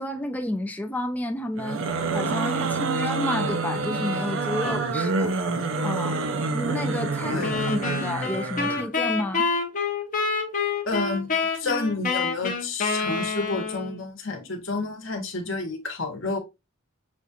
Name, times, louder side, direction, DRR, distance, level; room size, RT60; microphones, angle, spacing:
voice 1, 0.0-1.8 2.1-5.3 5.8-6.2 6.5-9.5, left 1 dB, 5° left, 0.4 m, -30 dB
sound 1, 1.6-8.9, right 3 dB, 60° right, 0.6 m, -27 dB
sound 2, 7.4-14.0, left 4 dB, 35° left, 0.7 m, -27 dB
voice 2, 10.9-11.3 11.5-16.4, left 3 dB, 60° left, 1.1 m, -30 dB
6.2 x 2.4 x 2.7 m
head